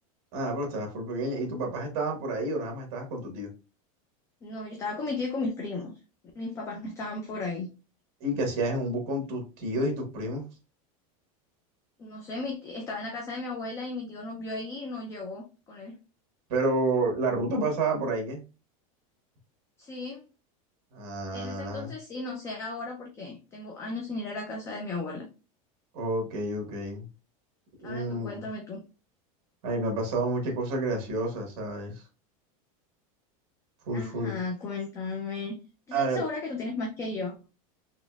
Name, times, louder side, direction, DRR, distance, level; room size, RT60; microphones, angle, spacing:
voice 1, 0.3-3.5 8.2-10.4 16.5-18.4 20.9-21.9 25.9-27.1 27.8-28.4 29.6-32.0 33.8-34.4 35.9-36.3, right 2 dB, 45° right, 1.5 m, -30 dB
voice 2, 4.4-5.9 6.4-7.7 12.0-16.0 19.8-20.2 21.3-25.3 27.8-28.8 33.9-35.6 35.9-37.3, left 3 dB, 15° left, 0.4 m, -35 dB
4.0 x 3.0 x 2.3 m
supercardioid pair, 170°, 19 cm